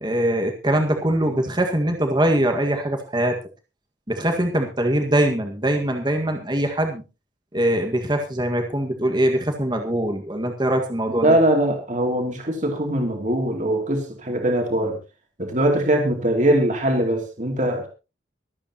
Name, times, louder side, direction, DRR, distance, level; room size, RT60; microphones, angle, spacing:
voice 1, 0.0-3.4 4.1-7.0 7.5-11.4, right 1 dB, 25° right, 4 dB, 1.8 m, -22 dB
voice 2, 11.1-15.0 15.4-17.9, right 1 dB, 40° right, 2 dB, 2.8 m, -21 dB
25.0 x 8.7 x 3.0 m, 0.29 s
head